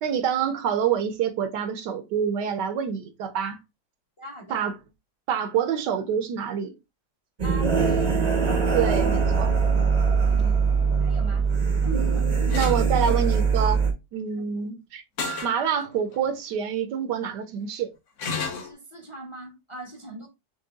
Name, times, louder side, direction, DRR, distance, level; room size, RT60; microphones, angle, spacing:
voice 1, 0.0-3.6 4.5-4.7 5.3-6.7 8.7-9.5 12.5-13.8 14.1-15.0 15.4-17.9, right 8 dB, 75° right, 1.2 m, -26 dB
voice 2, 4.2-4.7 7.4-8.1 10.2-11.5 11.8-12.6 14.3-14.5 18.6-20.3, right 3 dB, 25° left, 0.7 m, -40 dB
sound 1, 7.4-13.9, right 5 dB, 40° right, 0.6 m, -22 dB
sound 2, 12.5-12.8 15.2-15.6 16.1-16.2 18.2-18.7, left 4 dB, 55° left, 0.9 m, -30 dB
5.4 x 3.4 x 2.2 m
omnidirectional pair, 2.0 m